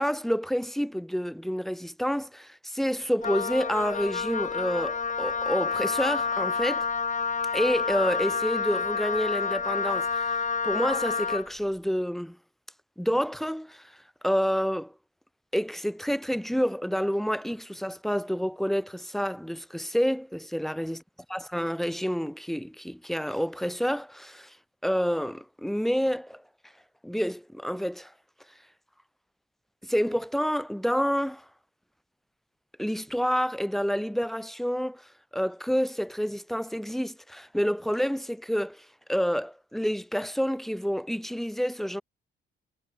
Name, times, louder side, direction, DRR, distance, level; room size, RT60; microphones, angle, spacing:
voice 1, 0.0-6.9 7.5-12.4 13.0-13.9 14.2-14.9 15.5-21.0 21.3-24.6 24.8-26.4 27.0-28.1 29.8-31.4 32.8-35.1 35.3-42.0, equal, ahead, 4.4 m, -28 dB
Wind instrument woodwind instrument, 3.2-11.5, left 5 dB, 40° left, 6.2 m, -29 dB
cardioid pair, 90°, 20 cm